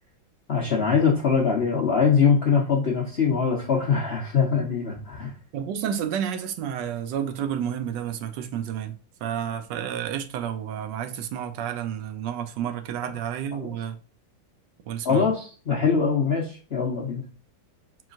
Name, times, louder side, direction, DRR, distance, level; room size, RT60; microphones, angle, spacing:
voice 1, 0.5-5.3 13.5-13.7 15.0-17.2, left 6 dB, 55° left, 0.6 m, -23 dB
voice 2, 5.5-8.9 9.2-14.0 14.9-15.3, right 9 dB, 75° right, 1.2 m, -30 dB
4.7 x 3.9 x 2.5 m
omnidirectional pair, 2.1 m